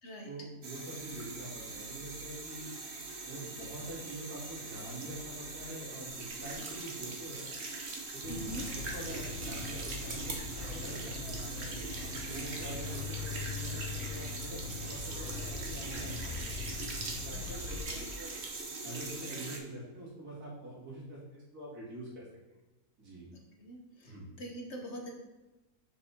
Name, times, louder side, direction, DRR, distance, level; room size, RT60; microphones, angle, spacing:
voice 1, 0.2-2.7 3.2-7.5 8.1-11.7 12.2-18.3 18.8-22.3 23.0-23.3 24.0-24.3, right 1 dB, 75° right, -6 dB, 3.0 m, -45 dB
sound 1, 0.6-19.6, right 3 dB, 50° right, 1.2 m, -41 dB
sound 2, 8.2-17.8, left 5 dB, 70° left, 1.5 m, -42 dB
voice 2, 8.3-8.6 23.6-25.1, right 1 dB, 50° left, 1 dB, 1.1 m, -43 dB
7.3 x 6.0 x 3.6 m, 1.1 s
omnidirectional pair, 1.6 m